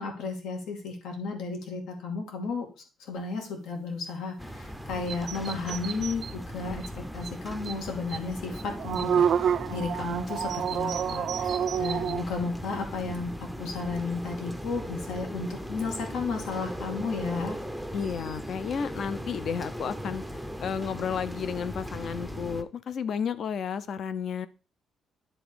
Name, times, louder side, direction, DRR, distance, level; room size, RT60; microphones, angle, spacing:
voice 1, 0.0-2.7 3.1-17.6, left 4 dB, 90° left, 2 dB, 2.5 m, -33 dB
sound 1, 4.4-22.6, equal, ahead, 0.6 m, -38 dB
sound 2, 5.1-6.3 6.8-6.9 7.2-7.3 7.6-7.7 8.1-8.2 8.6-12.2, right 8 dB, 50° right, 0.4 m, -28 dB
voice 2, 17.9-20.2 20.6-24.5, left 7 dB, 45° left, 14 dB, 0.5 m, -32 dB
10.0 x 3.9 x 4.9 m, 0.33 s
cardioid pair, 170°, 0 cm